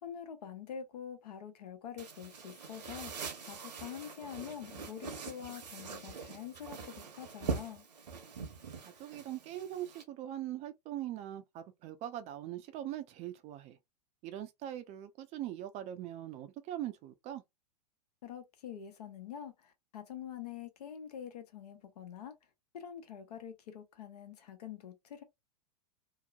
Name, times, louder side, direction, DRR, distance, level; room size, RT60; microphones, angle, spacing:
voice 1, 0.0-7.9 18.2-22.3 22.7-25.2, left 9 dB, 65° left, 0.9 m, -46 dB
sound 1, 2.0-10.0, right 5 dB, 75° right, 0.9 m, -43 dB
voice 2, 8.8-13.8 14.2-17.4, right 12 dB, 30° right, 0.4 m, -41 dB
2.8 x 2.0 x 2.3 m
hypercardioid pair, 105°, 21 cm